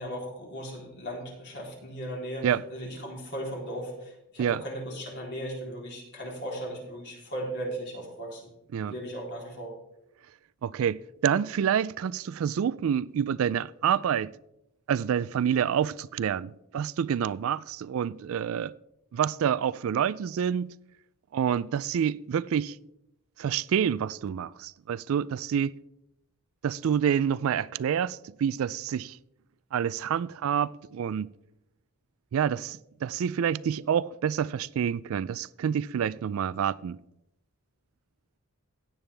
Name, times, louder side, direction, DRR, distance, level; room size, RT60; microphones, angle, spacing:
voice 1, 0.0-8.5 8.8-9.7, equal, 50° left, 3.5 m, -37 dB
voice 2, 10.6-14.3 14.9-18.7 19.1-20.7 21.3-22.7 23.4-25.7 26.6-29.2 29.7-31.3 32.3-37.0, right 8 dB, 65° right, 0.3 m, -28 dB
16.0 x 9.0 x 3.4 m
head